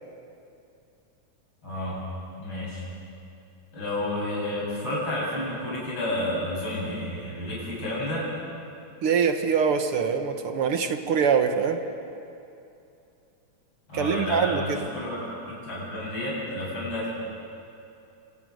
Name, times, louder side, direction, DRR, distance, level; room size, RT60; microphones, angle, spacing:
voice 1, 1.6-2.0 2.4-2.8 3.7-8.3 13.9-17.1, left 1 dB, 40° left, -6 dB, 8.7 m, -30 dB
voice 2, 9.0-11.8 13.9-14.9, right 6 dB, 55° right, 7 dB, 1.9 m, -24 dB
29.0 x 25.5 x 6.5 m, 2.7 s
omnidirectional pair, 3.5 m